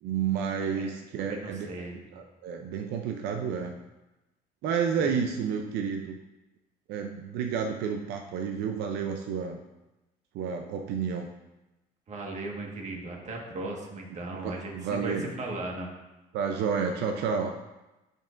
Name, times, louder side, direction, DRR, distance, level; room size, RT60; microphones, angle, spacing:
voice 1, 0.0-1.7 2.1-3.7 4.6-6.2 6.9-9.6 10.3-11.3 14.4-15.3 16.3-17.5, right 6 dB, 80° right, 4 dB, 0.6 m, -30 dB
voice 2, 0.7-2.0 5.0-5.1 12.1-15.9, right 2 dB, 45° right, 0 dB, 1.6 m, -37 dB
10.5 x 5.3 x 2.6 m, 1.0 s
cardioid pair, 110°, 17 cm